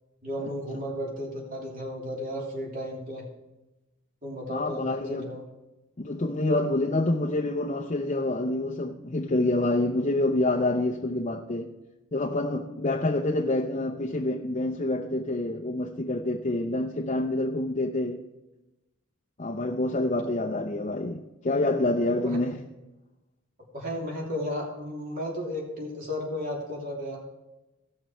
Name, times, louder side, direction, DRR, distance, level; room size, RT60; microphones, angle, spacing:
voice 1, 0.2-3.3 4.2-5.4 22.2-22.4 23.7-27.2, left 1 dB, 40° right, 3.0 m, -34 dB
voice 2, 4.5-5.3 6.0-11.7 12.1-18.2 19.4-22.6, left 2 dB, 35° left, 0.7 m, -27 dB
16.5 x 6.3 x 4.5 m
head